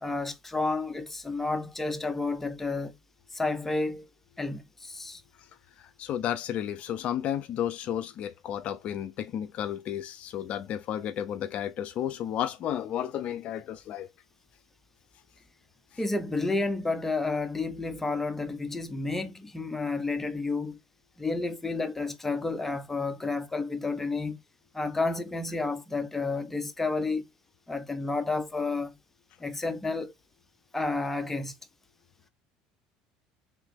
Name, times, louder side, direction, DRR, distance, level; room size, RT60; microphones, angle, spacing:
voice 1, 0.0-3.0 3.3-4.1 4.4-5.2 16.0-20.8 21.2-24.4 24.7-27.2 27.7-29.0 29.4-30.1 30.7-31.5, left 3 dB, 10° left, 0.7 m, -31 dB
voice 2, 5.8-14.1, left 10 dB, 55° left, 0.4 m, -32 dB
3.6 x 3.0 x 3.4 m
supercardioid pair, 95°, 3 cm